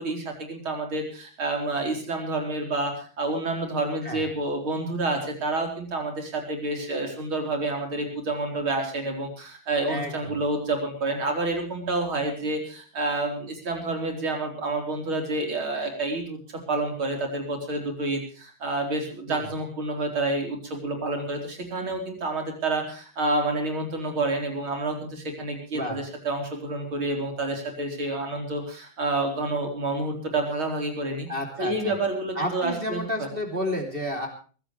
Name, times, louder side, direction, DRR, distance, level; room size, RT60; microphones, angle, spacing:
voice 1, 0.0-16.4 16.7-31.3 31.6-33.0, right 2 dB, 85° right, 2 dB, 5.1 m, -29 dB
voice 2, 9.9-10.4 19.3-19.5 25.7-26.0 31.3-31.9 32.3-34.3, equal, 25° right, 2 dB, 3.4 m, -31 dB
22.5 x 16.0 x 3.3 m, 0.39 s
omnidirectional pair, 2.2 m